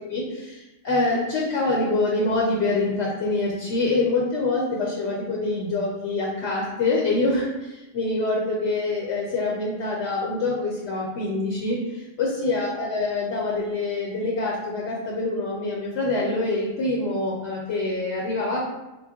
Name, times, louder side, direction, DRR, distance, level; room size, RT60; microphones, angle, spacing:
voice 1, 0.8-7.4 7.9-11.8 12.2-18.7, left 2 dB, 65° left, -4 dB, 0.9 m, -25 dB
4.5 x 2.2 x 2.8 m, 1.0 s
omnidirectional pair, 1.3 m